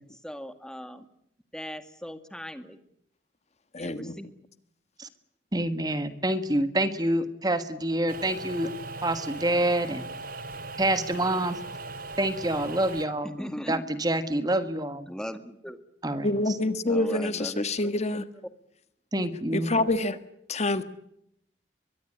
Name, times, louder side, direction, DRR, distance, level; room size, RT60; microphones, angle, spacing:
voice 1, 0.1-1.1 1.5-2.8 3.8-4.3 13.2-14.0 15.1-15.8 16.9-18.5, equal, 5° left, 9 dB, 1.9 m, -39 dB
voice 2, 3.7-4.1 16.2-18.2 19.1-20.2 20.5-20.8, left 2 dB, 40° left, 11 dB, 1.5 m, -27 dB
voice 3, 5.5-8.7 9.0-10.0 10.8-11.6 12.2-13.4 13.7-15.1 16.0-16.3 19.1-19.7, right 1 dB, 25° right, 11 dB, 1.5 m, -27 dB
sound 1, 8.1-13.1, right 3 dB, 55° right, 2.7 m, -39 dB
23.0 x 23.0 x 8.7 m, 0.75 s
head